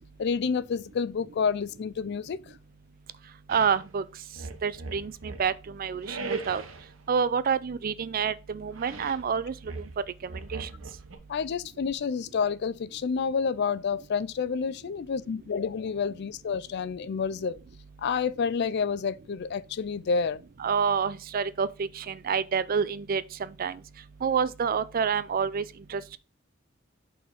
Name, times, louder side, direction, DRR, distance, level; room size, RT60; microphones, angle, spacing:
voice 1, 0.2-2.4 11.3-17.6 18.0-20.4, left 5 dB, 55° left, 0.4 m, -29 dB
voice 2, 3.5-4.0 4.6-6.6 7.1-9.5 10.5-10.7 20.6-23.8 24.2-25.6 25.9-26.0, right 6 dB, 45° right, 0.4 m, -28 dB
sound 1, 3.5-3.8 4.3-5.5 6.0-6.9 8.7-9.3 9.7-11.2, right 4 dB, 80° right, 1.0 m, -38 dB
5.3 x 4.4 x 5.0 m
head